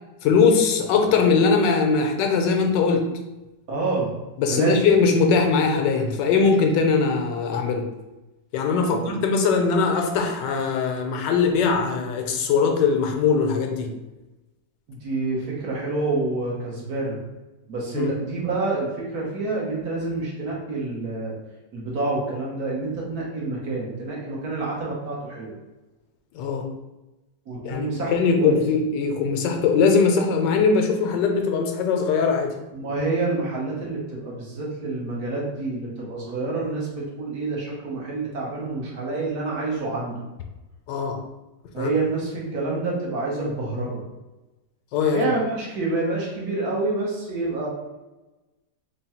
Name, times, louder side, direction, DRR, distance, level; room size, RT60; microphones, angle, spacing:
voice 1, 0.2-3.1 4.4-7.9 8.5-13.9 17.9-18.1 26.3-26.7 27.6-32.5 40.9-41.2 41.8-41.9 44.9-45.3, left 5 dB, 80° left, 4 dB, 1.2 m, -21 dB
voice 2, 3.7-4.1 4.5-4.8 8.9-9.2 14.9-17.2 17.7-21.3 21.7-25.5 27.5-28.6 32.7-40.1 41.7-44.0 45.1-47.7, right 3 dB, 60° right, -3 dB, 1.4 m, -28 dB
3.6 x 2.3 x 4.2 m, 1.1 s
omnidirectional pair, 1.9 m